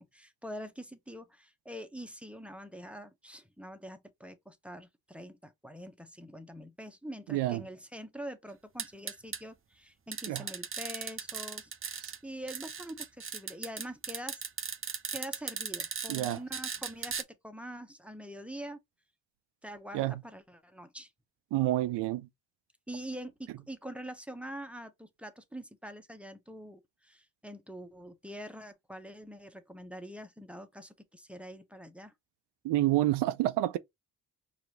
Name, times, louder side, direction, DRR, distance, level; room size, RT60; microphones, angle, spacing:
voice 1, 0.0-14.4 15.1-18.8 19.6-21.1 22.9-32.1, equal, 5° right, 1.0 m, -45 dB
voice 2, 7.3-7.6 10.3-10.4 16.1-16.4 19.9-20.1 21.5-22.3 32.6-33.8, right 15 dB, 80° right, 0.5 m, -28 dB
sound 1, 8.8-9.4 10.1-12.2 12.5-17.2, right 6 dB, 30° right, 0.7 m, -37 dB
4.6 x 2.8 x 3.1 m
supercardioid pair, 50°, 41 cm